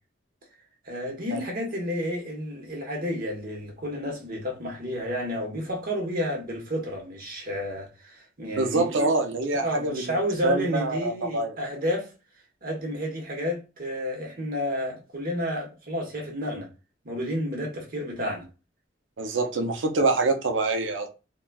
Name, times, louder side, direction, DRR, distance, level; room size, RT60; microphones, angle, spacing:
voice 1, 0.8-8.9 9.5-12.1 12.6-16.7 17.0-18.5, left 1 dB, 50° right, 1.1 m, -31 dB
voice 2, 8.6-10.1 10.4-11.6 19.2-21.1, right 3 dB, 85° right, 0.6 m, -25 dB
3.9 x 2.3 x 2.3 m
head